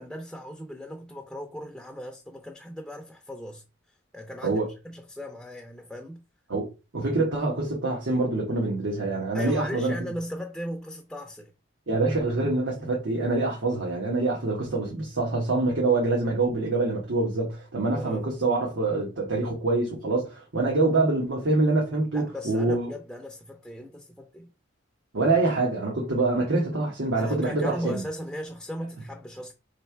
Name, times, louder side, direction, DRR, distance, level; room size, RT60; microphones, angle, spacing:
voice 1, 0.0-3.6 4.1-6.2 9.3-11.5 17.9-18.3 22.1-24.5 27.1-29.5, equal, 5° left, 0.5 m, -37 dB
voice 2, 6.9-9.9 11.9-22.9 25.1-28.0, right 2 dB, 85° right, 1.3 m, -25 dB
3.5 x 3.3 x 4.4 m
head